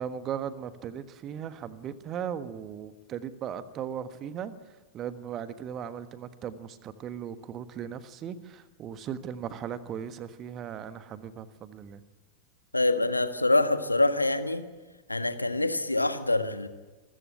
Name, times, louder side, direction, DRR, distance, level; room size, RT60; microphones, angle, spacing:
voice 1, 0.0-12.0, right 8 dB, 30° right, 12 dB, 1.4 m, -37 dB
voice 2, 12.7-14.6 15.1-16.7, left 2 dB, 85° left, 9 dB, 1.5 m, -25 dB
25.5 x 14.5 x 9.9 m, 1.3 s
figure-of-eight pair, 90°, 0 cm